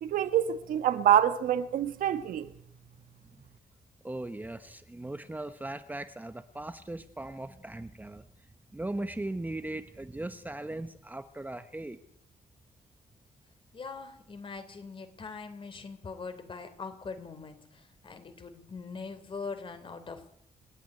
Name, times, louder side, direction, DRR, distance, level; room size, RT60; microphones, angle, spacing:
voice 1, 0.0-2.5, right 10 dB, 90° right, 1.6 m, -26 dB
voice 2, 4.0-8.3 8.7-12.0, right 2 dB, 10° right, 1.2 m, -38 dB
voice 3, 13.7-20.3, left 4 dB, 40° left, 3.4 m, -42 dB
28.0 x 9.9 x 9.7 m
cardioid pair, 115°, 14 cm